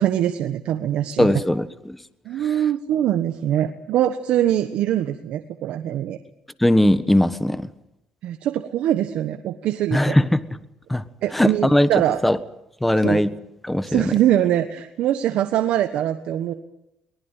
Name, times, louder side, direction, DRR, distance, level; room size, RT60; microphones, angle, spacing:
voice 1, 0.0-1.3 2.2-6.2 8.2-10.2 11.2-12.2 13.0-13.2 13.9-16.5, right 11 dB, 75° right, 8 dB, 1.3 m, -23 dB
voice 2, 1.2-2.0 6.6-7.7 9.9-10.4 10.9-11.0 11.3-11.9 12.2-12.4 12.8-13.3 13.6-14.1, left 1 dB, 5° left, 14 dB, 1.3 m, -19 dB
22.5 x 19.5 x 9.1 m, 0.85 s
cardioid pair, 100°, 2 cm